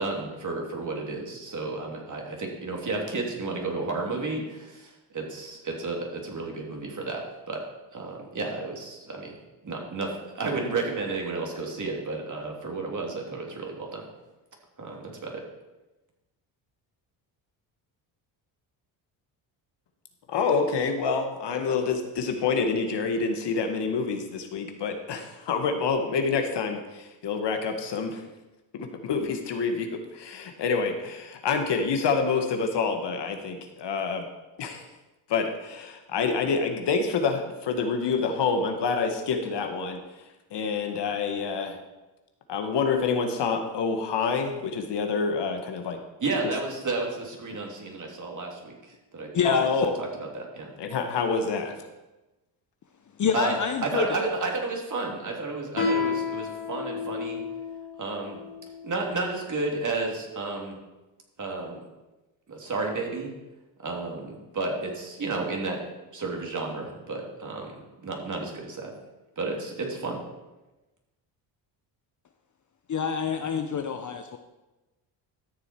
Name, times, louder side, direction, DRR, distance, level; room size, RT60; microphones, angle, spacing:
voice 1, 0.0-7.6 7.9-9.4 9.6-14.0 14.8-15.4 46.2-49.3 50.0-50.7 53.3-57.4 58.0-58.4 58.8-60.7 61.4-61.8 62.5-63.3 63.8-65.8 66.1-68.9 69.4-70.2, right 3 dB, 40° right, 0 dB, 3.0 m, -32 dB
voice 2, 20.3-28.2 28.7-34.3 34.6-34.8 35.3-40.0 40.5-41.8 42.5-46.0 49.4-49.9 50.8-51.8, left 5 dB, 55° left, 5 dB, 1.6 m, -27 dB
voice 3, 49.3-49.7 53.2-54.1 72.9-74.4, left 7 dB, 40° left, 7 dB, 0.8 m, -26 dB
Guitar, 55.7-59.0, left 5 dB, 80° left, 3.3 m, -31 dB
13.0 x 7.0 x 4.6 m, 1.1 s
supercardioid pair, 65°, 48 cm